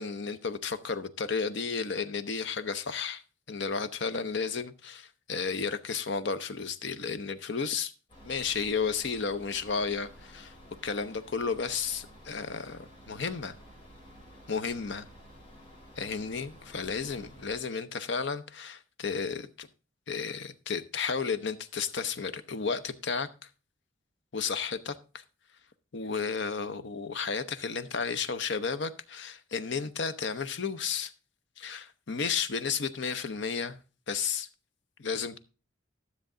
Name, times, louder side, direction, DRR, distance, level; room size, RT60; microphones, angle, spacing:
voice 1, 0.0-3.2 3.5-7.9 8.2-10.5 10.8-13.5 14.5-15.1 16.0-19.7 20.1-23.3 24.3-25.2 25.9-31.1 31.6-33.8 34.1-34.5 35.0-35.4, left 5 dB, 60° left, 0.7 m, -33 dB
sound 1, 8.1-17.6, equal, 25° left, 4.0 m, -52 dB
12.5 x 7.2 x 3.8 m
head